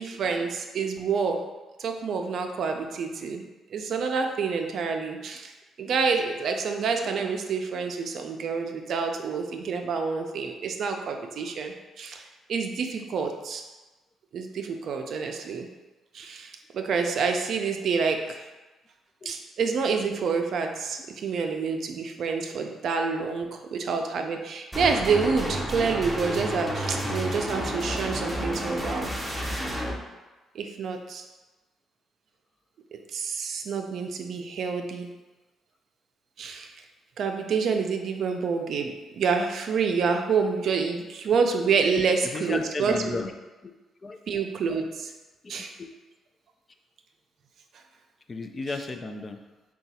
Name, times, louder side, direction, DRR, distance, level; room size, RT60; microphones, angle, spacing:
voice 1, 0.0-1.4 1.8-5.5 5.8-12.2 12.5-13.6 14.3-15.7 16.1-18.5 19.2-29.1 30.5-31.2 33.1-35.1 36.4-36.7 37.2-43.2 44.3-45.1 45.5-45.7, right 5 dB, 65° right, 4 dB, 0.4 m, -28 dB
sound 1, 24.7-29.9, equal, 5° right, 0.7 m, -30 dB
voice 2, 42.2-43.3 43.6-43.7 44.0-44.2 45.4-45.9 48.3-49.4, left 3 dB, 35° left, 6 dB, 0.3 m, -34 dB
3.7 x 2.3 x 4.1 m, 1.2 s
cardioid pair, 90°, 0 cm